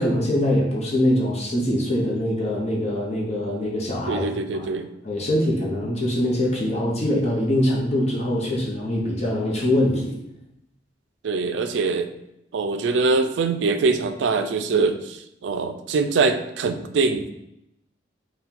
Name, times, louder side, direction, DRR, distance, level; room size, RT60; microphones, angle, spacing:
voice 1, 0.0-4.2 4.5-4.7 5.0-10.1, left 1 dB, 35° left, -3 dB, 0.8 m, -23 dB
voice 2, 4.1-4.9 11.2-12.1 12.5-17.3, right 4 dB, 75° right, 9 dB, 0.4 m, -23 dB
4.4 x 2.2 x 3.7 m, 0.81 s
head